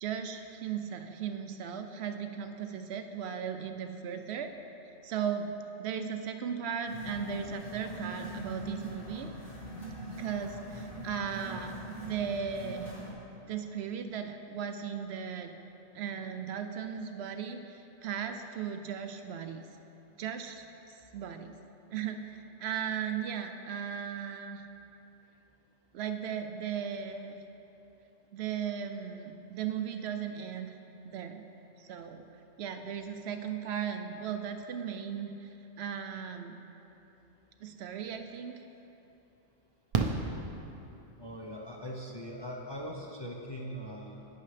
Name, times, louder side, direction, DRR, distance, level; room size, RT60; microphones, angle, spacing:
voice 1, 0.0-4.5 5.0-5.5 5.8-9.3 10.2-11.7 12.0-12.9 13.5-15.5 15.9-19.7 20.2-21.5 21.9-24.6 25.9-27.4 28.3-30.8 31.0-31.4 31.8-32.2 32.6-35.5 35.8-36.6 37.6-38.6, right 7 dB, 70° right, 6 dB, 0.8 m, -37 dB
sound 1, 6.8-13.1, right 1 dB, 85° left, 2.3 m, -42 dB
Fireworks, 38.2-38.3 39.9-41.2 43.0-43.1 43.3-43.4, right 4 dB, 45° right, 0.5 m, -32 dB
voice 2, 41.2-44.3, equal, 30° left, -2 dB, 0.5 m, -41 dB
11.0 x 8.7 x 3.3 m, 2.9 s
omnidirectional pair, 1.2 m